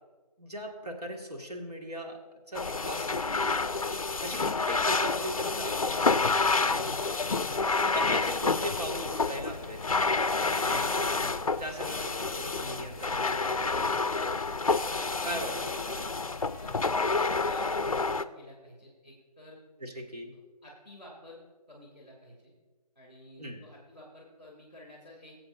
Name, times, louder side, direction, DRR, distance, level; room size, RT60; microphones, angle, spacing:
voice 1, 0.4-2.2 2.5-3.5 4.2-7.3 7.8-9.8 10.5-11.3 11.6-14.4 15.2-16.1 19.8-20.3 23.4-23.6, equal, 70° right, 0 dB, 2.0 m, -39 dB
sound 1, 2.5-18.2, left 4 dB, 60° left, 0.4 m, -29 dB
sound 2, 6.5-17.1, left 1 dB, 20° left, 1.5 m, -54 dB
voice 2, 16.6-19.6 20.6-21.4 21.7-22.5 22.9-25.4, equal, 15° right, -13 dB, 1.6 m, -51 dB
20.0 x 7.8 x 2.6 m, 1.4 s
figure-of-eight pair, 180°, 21 cm